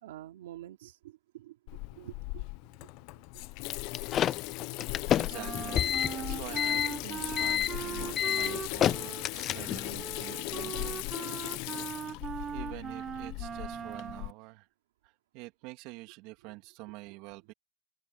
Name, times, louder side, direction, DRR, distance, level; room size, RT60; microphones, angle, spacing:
voice 1, 0.0-1.6 1.9-2.4 5.8-5.9, right 14 dB, 90° right, 3.1 m, -47 dB
Water tap faucet / Sink (filling or washing), 1.7-14.3, left 23 dB, 60° left, 0.8 m, -38 dB
sound 1, 3.7-10.0, left 10 dB, 35° left, 0.5 m, -29 dB
voice 2, 5.1-11.6 12.5-14.7 15.0-17.5, right 22 dB, 60° right, 3.0 m, -47 dB
Wind instrument woodwind instrument, 5.3-14.3, right 8 dB, 25° right, 0.9 m, -40 dB
supercardioid pair, 125°, 0 cm